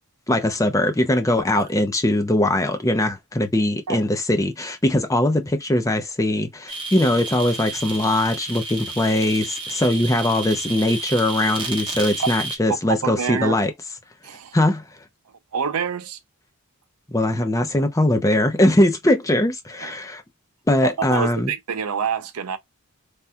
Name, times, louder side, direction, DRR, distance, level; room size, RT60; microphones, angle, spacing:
voice 1, 0.3-13.7 14.5-14.8 17.1-20.2 20.7-21.5, left 1 dB, 15° left, 0.5 m, -21 dB
sound 1, 6.7-12.6, right 3 dB, 20° right, 0.8 m, -31 dB
voice 2, 13.0-13.6 14.2-14.6 15.5-16.2 19.8-19.9 20.8-22.6, right 6 dB, 80° right, 0.6 m, -26 dB
3.4 x 2.3 x 2.7 m
head